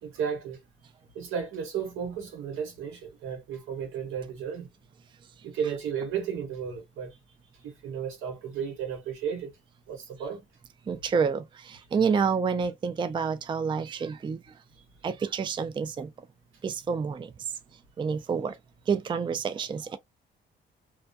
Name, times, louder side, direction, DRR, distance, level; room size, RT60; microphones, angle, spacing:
voice 1, 0.0-0.6 1.1-4.7 5.4-7.2 7.6-9.6 9.9-10.4 14.8-14.9, right 7 dB, 90° right, 1.0 m, -34 dB
voice 2, 10.9-14.4 15.0-16.1 16.6-17.3 18.0-18.6 18.9-20.0, right 6 dB, 25° right, 0.4 m, -28 dB
2.3 x 2.2 x 2.6 m
cardioid pair, 90°, 20 cm